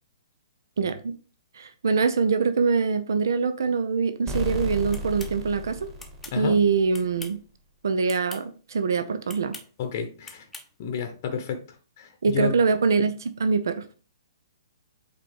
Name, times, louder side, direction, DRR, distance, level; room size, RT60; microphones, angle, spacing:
voice 1, 0.8-1.1 1.5-5.9 6.3-7.4 7.8-9.6 12.2-13.9, right 5 dB, 60° right, 0.6 m, -24 dB
sound 1, 4.3-7.0, equal, 15° right, 1.8 m, -34 dB
sound 2, 4.9-5.3 6.0-6.4 6.9-7.4 8.0-8.4 9.3-9.7 10.2-10.7, left 3 dB, 5° left, 0.8 m, -42 dB
voice 2, 9.8-10.5 10.8-11.6 12.0-12.5, left 6 dB, 40° left, 0.9 m, -30 dB
7.9 x 4.4 x 3.5 m
figure-of-eight pair, 120°, 2 cm